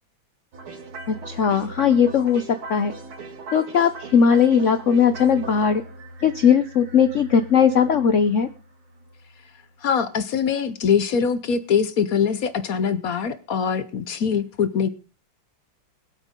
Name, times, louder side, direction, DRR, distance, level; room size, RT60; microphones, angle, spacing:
sound 1, 0.5-9.7, right 2 dB, 85° right, 3.0 m, -39 dB
voice 1, 1.1-2.4 2.7-2.9 3.5-5.8 6.2-8.5, left 7 dB, 75° left, 11 dB, 0.6 m, -18 dB
voice 2, 9.8-14.9, left 7 dB, 55° left, 12 dB, 1.0 m, -23 dB
22.0 x 8.2 x 3.7 m, 0.34 s
omnidirectional pair, 2.2 m